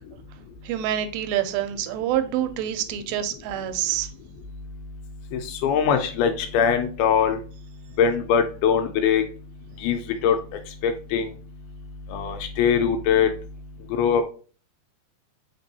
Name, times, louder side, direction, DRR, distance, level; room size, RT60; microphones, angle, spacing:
voice 1, 0.6-4.1, right 11 dB, 80° right, 2.2 m, -26 dB
voice 2, 5.3-7.4 8.0-9.2 9.8-10.4 10.8-11.3 12.1-13.3 13.9-14.2, left 7 dB, 85° left, 2.4 m, -22 dB
5.2 x 3.5 x 2.7 m
omnidirectional pair, 4.4 m